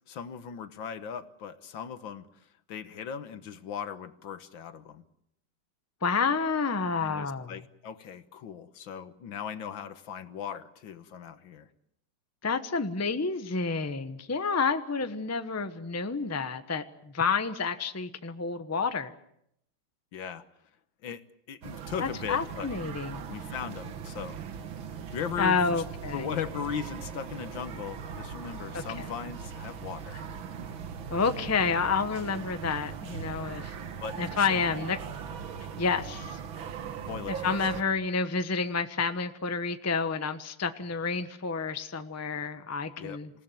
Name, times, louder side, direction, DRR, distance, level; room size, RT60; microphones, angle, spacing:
voice 1, 0.1-2.3 2.7-5.0 7.0-11.7 20.1-20.4 21.0-21.2 21.5-22.7 23.3-24.4 25.1-25.8 26.1-30.2 34.0-34.9 36.8-37.6 43.0-43.2, left 8 dB, 70° left, 11 dB, 1.9 m, -38 dB
voice 2, 6.0-7.5 12.4-16.8 17.1-19.1 22.0-23.3 25.4-26.3 28.7-29.1 31.1-33.7 34.2-35.0 35.8-36.4 37.3-43.3, left 5 dB, 10° left, 9 dB, 0.7 m, -29 dB
sound 1, 21.6-37.8, right 7 dB, 75° right, 2.2 m, -40 dB
27.5 x 17.0 x 9.2 m, 0.76 s
omnidirectional pair, 2.2 m